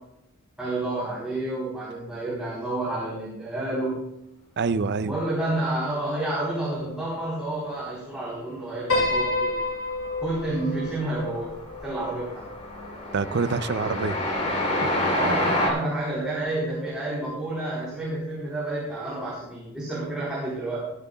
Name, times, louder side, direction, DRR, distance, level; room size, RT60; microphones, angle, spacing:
voice 1, 0.6-4.1 5.1-9.6 10.2-11.5 11.8-12.4 15.1-20.8, right 2 dB, 5° right, -8 dB, 3.8 m, -30 dB
voice 2, 4.6-5.2 13.1-14.2 14.8-15.2, right 4 dB, 55° right, 14 dB, 0.5 m, -26 dB
Piano, 8.9-13.3, left 2 dB, 90° left, 4.8 m, -29 dB
Train, 10.0-10.5 10.8-15.7, left 1 dB, 35° left, 2.9 m, -27 dB
15.0 x 15.0 x 2.3 m, 0.85 s
head